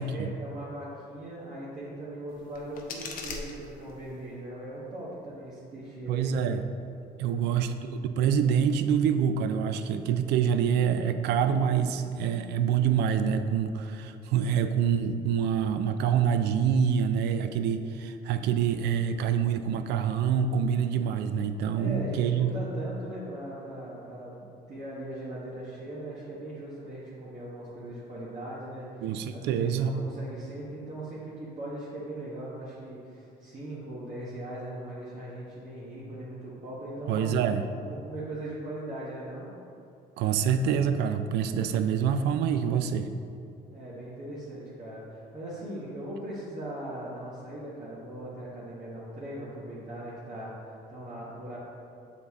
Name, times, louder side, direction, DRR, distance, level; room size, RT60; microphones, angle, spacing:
voice 1, 0.0-6.4 7.2-7.4 21.7-29.0 29.3-37.4 37.8-39.5 43.7-51.6, right 1 dB, 50° right, -9 dB, 1.3 m, -39 dB
sound 1, 2.3-4.3, left 4 dB, 55° left, 0.7 m, -41 dB
voice 2, 6.1-6.6 7.2-22.5 29.0-29.9 37.1-37.6 40.2-43.1, right 7 dB, 85° right, 9 dB, 0.4 m, -26 dB
7.0 x 4.0 x 3.5 m, 2.6 s
cardioid pair, 110°, 17 cm